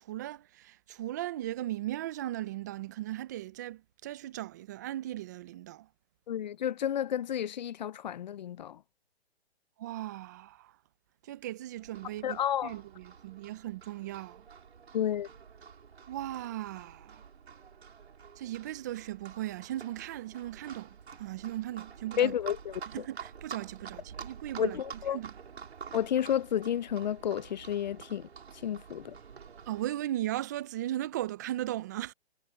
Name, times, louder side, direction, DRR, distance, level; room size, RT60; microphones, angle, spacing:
voice 1, 0.0-5.9 9.8-10.7 11.2-14.4 16.1-17.2 18.4-22.3 22.9-24.8 25.1-25.3 29.7-32.1, right 14 dB, 15° right, 0.5 m, -37 dB
voice 2, 6.3-8.8 12.2-12.7 14.9-15.3 22.2-22.7 24.6-25.2 25.9-28.3 28.6-29.1, left 10 dB, 45° left, 0.5 m, -31 dB
Livestock farm animals working animals, 11.8-29.9, right 6 dB, 75° right, 4.3 m, -48 dB
hypercardioid pair, 150°, 33 cm